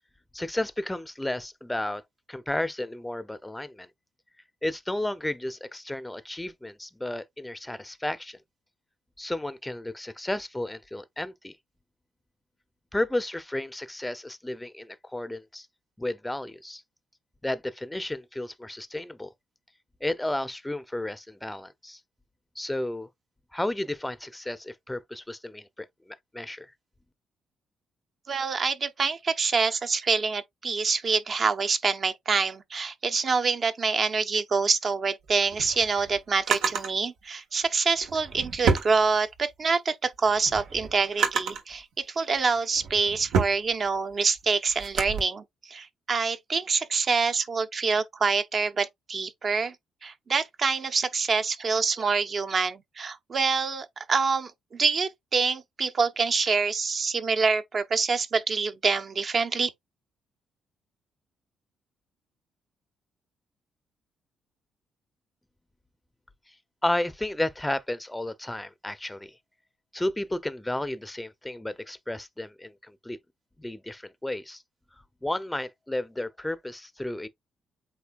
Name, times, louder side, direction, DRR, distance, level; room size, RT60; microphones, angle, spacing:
voice 1, 0.3-2.0 2.3-3.9 4.6-8.4 9.2-11.5 12.9-15.7 16.0-16.8 17.4-19.3 20.0-22.0 22.6-23.1 23.5-26.7 66.8-69.4 69.9-73.2 73.6-74.6 75.2-77.3, left 1 dB, 10° left, 0.6 m, -32 dB
voice 2, 28.3-49.7 50.0-59.7, right 4 dB, 45° right, 0.9 m, -26 dB
Drawer open or close, 35.3-36.9 38.0-39.6 40.0-41.7 42.4-45.2, right 5 dB, 80° right, 1.4 m, -29 dB
8.1 x 2.7 x 2.4 m
cardioid pair, 90°, 0 cm